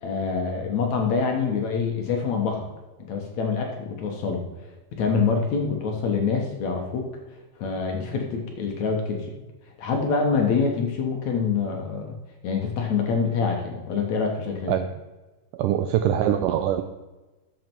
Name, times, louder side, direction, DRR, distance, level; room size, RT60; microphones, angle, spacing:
voice 1, 0.0-2.7 3.1-4.4 4.9-7.0 7.6-9.3 9.8-12.2 12.4-14.8, left 5 dB, 60° left, 2 dB, 2.2 m, -25 dB
voice 2, 15.5-16.8, right 10 dB, 85° right, 8 dB, 1.9 m, -23 dB
13.0 x 7.8 x 4.6 m, 1.1 s
omnidirectional pair, 4.4 m